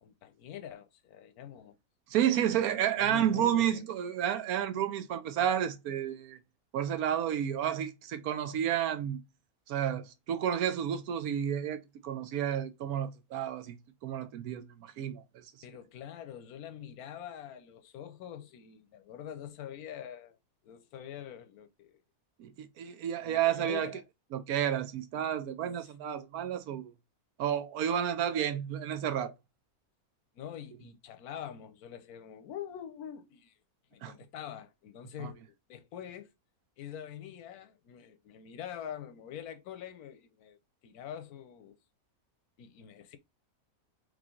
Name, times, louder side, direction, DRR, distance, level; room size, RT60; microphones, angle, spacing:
voice 1, 0.0-1.8 3.0-3.9 15.6-20.4 20.6-22.0 23.2-24.0 30.3-33.6 33.9-36.3 36.8-41.8 42.6-43.2, left 9 dB, 90° left, 1.2 m, -45 dB
voice 2, 2.1-6.4 6.7-9.2 9.7-13.8 14.0-15.4 22.4-23.9 24.3-26.9 27.4-29.3 34.0-34.1 35.2-35.3, right 10 dB, 80° right, 1.2 m, -31 dB
3.8 x 3.2 x 3.7 m
omnidirectional pair, 1.5 m